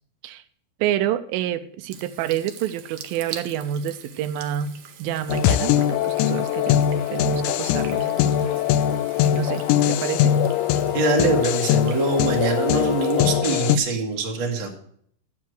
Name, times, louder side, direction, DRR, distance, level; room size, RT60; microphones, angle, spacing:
voice 1, 0.8-6.8 7.1-8.6 9.3-10.3, right 10 dB, 85° right, 11 dB, 2.4 m, -28 dB
Water tap faucet / Sink (filling or washing), 1.9-13.3, right 8 dB, 65° right, 1.7 m, -44 dB
sound 1, 5.3-13.8, left 10 dB, 90° left, 1.7 m, -21 dB
voice 2, 10.9-14.7, right 3 dB, 40° right, 1 dB, 1.9 m, -23 dB
11.0 x 7.4 x 6.2 m, 0.63 s
omnidirectional pair, 4.1 m